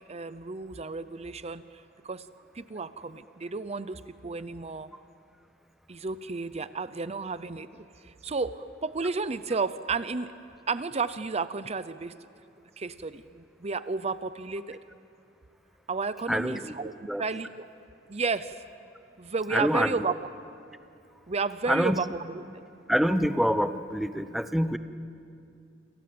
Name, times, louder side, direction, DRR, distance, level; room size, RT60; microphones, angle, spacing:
voice 1, 0.0-1.6 2.0-2.3 2.5-4.9 5.9-10.3 10.7-12.1 12.8-14.8 15.9-17.7 18.1-18.6 19.2-20.1 21.3-22.4, right 4 dB, 35° right, 13 dB, 0.7 m, -32 dB
voice 2, 16.3-16.7 17.1-17.2 19.5-19.9 21.7-22.0 22.9-24.8, equal, ahead, 10 dB, 0.8 m, -26 dB
29.0 x 26.5 x 7.8 m, 2.5 s
head